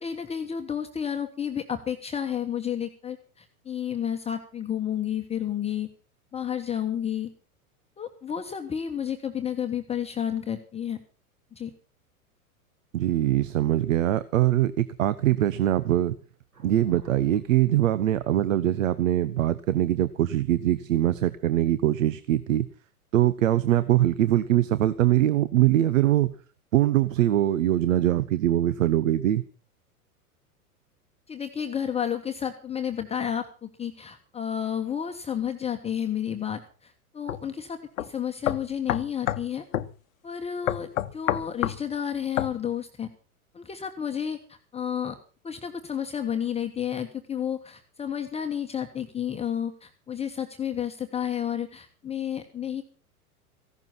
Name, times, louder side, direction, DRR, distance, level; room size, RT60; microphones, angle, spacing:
voice 1, 0.0-5.9 6.3-7.3 8.0-11.0 11.5-11.7 31.3-39.6 40.2-43.1 43.5-45.2 45.4-52.8, left 9 dB, 15° left, 5 dB, 1.3 m, -31 dB
voice 2, 12.9-16.1 16.6-22.7 23.1-26.3 26.7-29.4, right 13 dB, 60° right, 16 dB, 0.9 m, -22 dB
sound 1, 16.5-20.8, right 1 dB, 80° right, 4.8 m, -54 dB
sound 2, 37.3-37.4 38.0-38.1 38.4-39.5 39.7-39.9 40.7-41.8 42.4-42.5, left 12 dB, 60° left, 1.0 m, -27 dB
15.5 x 12.0 x 5.9 m, 0.39 s
figure-of-eight pair, 100°, 44 cm